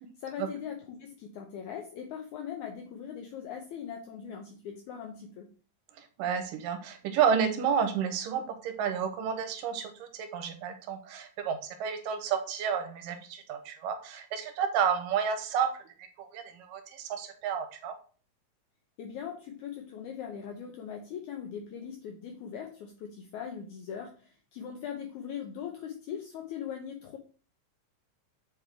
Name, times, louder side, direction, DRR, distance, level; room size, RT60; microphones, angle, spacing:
voice 1, 0.2-5.5 19.0-27.2, left 8 dB, 75° left, 3 dB, 1.9 m, -40 dB
voice 2, 6.2-15.9 16.2-17.9, right 7 dB, 80° right, 6 dB, 2.5 m, -31 dB
7.9 x 3.4 x 3.6 m, 0.39 s
omnidirectional pair, 3.9 m